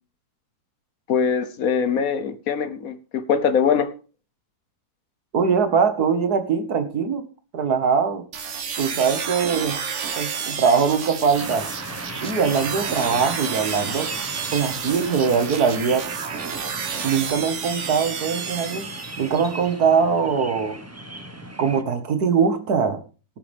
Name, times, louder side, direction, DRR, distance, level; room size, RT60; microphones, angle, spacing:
voice 1, 1.1-3.9, left 6 dB, 65° left, 13 dB, 1.4 m, -22 dB
voice 2, 5.3-7.2 7.5-8.2 8.8-9.8 10.2-11.7 12.2-14.1 14.5-16.0 17.0-18.9 19.2-20.8 21.6-23.0, right 6 dB, 70° right, 10 dB, 2.1 m, -22 dB
sound 1, 8.3-19.5, right 6 dB, 50° right, 1.4 m, -31 dB
sound 2, 11.3-21.8, right 1 dB, 10° right, 1.0 m, -37 dB
17.5 x 8.7 x 3.5 m, 0.34 s
omnidirectional pair, 1.7 m